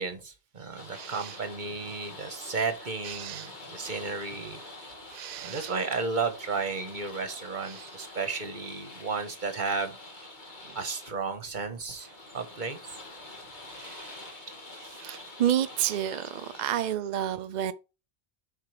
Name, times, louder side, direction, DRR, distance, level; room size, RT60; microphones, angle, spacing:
voice 1, 0.0-4.6 5.4-9.9 10.7-12.1 12.3-12.8, right 4 dB, 40° right, 1.4 m, -33 dB
sound 1, 0.8-16.9, left 2 dB, 40° left, 1.9 m, -46 dB
voice 2, 0.9-1.4 3.0-3.5 3.9-4.0 5.1-5.7 7.6-8.0 10.6-10.8 13.7-14.4 14.8-17.7, right 11 dB, 60° right, 0.4 m, -31 dB
7.5 x 5.6 x 3.3 m
omnidirectional pair, 1.2 m